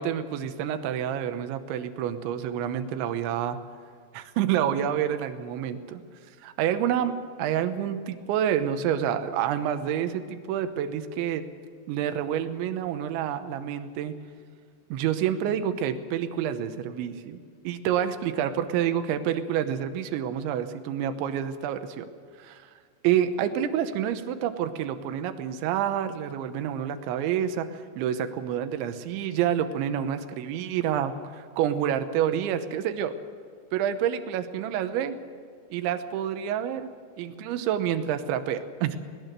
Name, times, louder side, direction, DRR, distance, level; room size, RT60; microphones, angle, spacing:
voice 1, 0.0-3.6 4.1-6.0 6.4-7.1 7.4-11.4 11.9-14.1 14.9-17.4 17.6-22.1 22.4-22.6 23.0-33.1 33.7-35.2 35.7-36.9 37.2-39.0, right 9 dB, 90° right, 10 dB, 3.4 m, -28 dB
21.0 x 19.0 x 6.8 m, 2.1 s
omnidirectional pair, 5.1 m